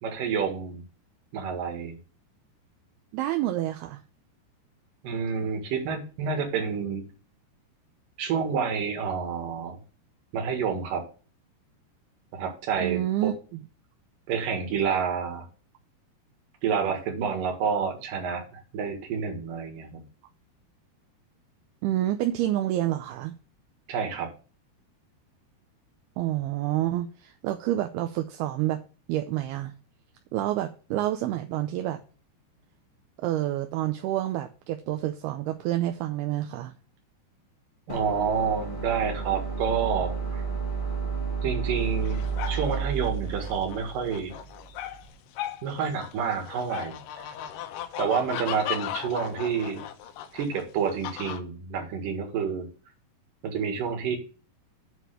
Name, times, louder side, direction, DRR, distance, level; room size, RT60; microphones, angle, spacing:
voice 1, 0.0-0.8 1.3-2.0 5.0-7.1 8.2-9.8 10.3-11.0 12.3-13.3 14.3-15.5 16.6-20.0 23.9-24.3 37.9-40.4 41.4-44.3 45.6-47.0 48.0-49.9 50.3-52.7 53.4-54.2, right 6 dB, 60° right, 3.2 m, -29 dB
voice 2, 3.1-4.0 12.8-13.6 21.8-23.3 26.2-28.8 29.1-29.7 30.3-32.0 33.2-36.7, right 13 dB, 80° right, 2.5 m, -28 dB
sound 1, 37.9-45.0, right 5 dB, 30° left, 0.9 m, -32 dB
sound 2, 41.9-51.4, left 11 dB, 80° left, 2.1 m, -37 dB
8.0 x 4.7 x 6.7 m
omnidirectional pair, 4.8 m